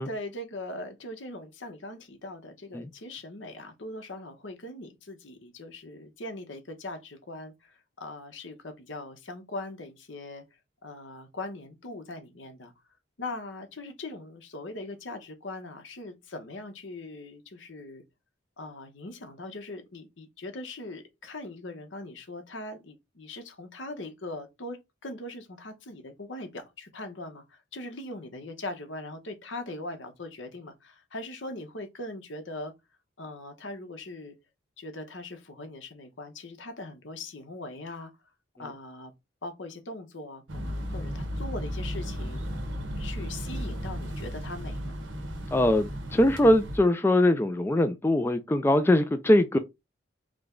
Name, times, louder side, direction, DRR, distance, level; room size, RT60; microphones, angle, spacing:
voice 1, 0.0-10.4 10.8-12.7 13.2-18.0 18.6-32.7 33.2-34.4 34.8-38.1 38.6-39.1 39.4-42.5 43.0-45.0, left 2 dB, 75° left, 1.0 m, -40 dB
sound 1, 40.5-46.8, equal, 80° right, 1.0 m, -34 dB
voice 2, 45.5-49.6, left 1 dB, 10° left, 0.3 m, -22 dB
5.0 x 2.2 x 3.7 m
head